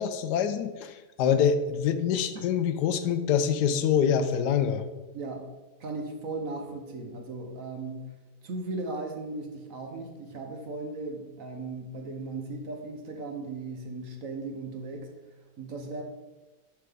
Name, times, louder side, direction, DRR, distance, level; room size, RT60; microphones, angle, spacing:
voice 1, 0.0-4.9, left 8 dB, 80° left, 10 dB, 1.1 m, -25 dB
voice 2, 5.1-5.5 5.8-8.1 8.4-15.1 15.6-16.0, right 3 dB, 55° right, 3 dB, 1.3 m, -37 dB
7.6 x 6.1 x 3.5 m, 1.1 s
omnidirectional pair, 1.8 m